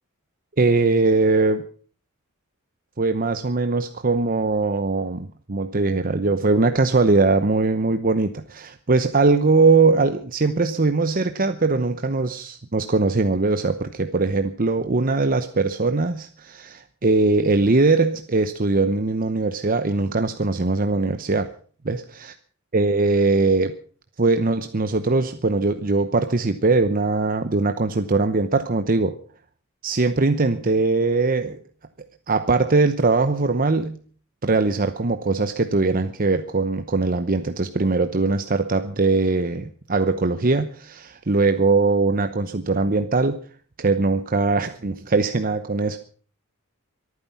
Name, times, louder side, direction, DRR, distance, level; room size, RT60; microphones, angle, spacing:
voice 1, 0.6-1.6 3.0-21.5 21.8-22.3 22.7-23.8 24.2-29.2 29.8-31.6 32.0-34.0 34.4-43.4 43.8-46.0, right 3 dB, 40° right, 9 dB, 0.9 m, -21 dB
24.0 x 9.6 x 5.8 m, 0.43 s
head